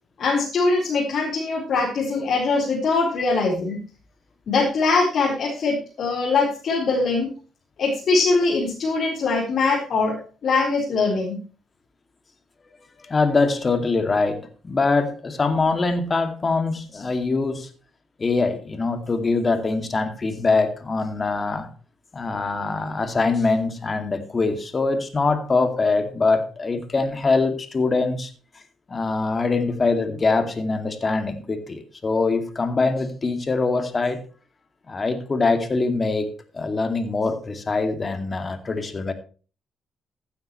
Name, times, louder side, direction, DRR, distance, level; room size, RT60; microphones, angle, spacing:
voice 1, 0.2-3.8 4.5-7.3 7.8-10.2 10.4-11.4, left 3 dB, 60° left, 4.2 m, -22 dB
voice 2, 13.0-17.7 18.2-21.7 22.1-28.3 28.9-34.2 34.9-39.1, left 3 dB, 30° left, 2.3 m, -23 dB
15.5 x 9.5 x 3.1 m
cardioid pair, 90°, 0 cm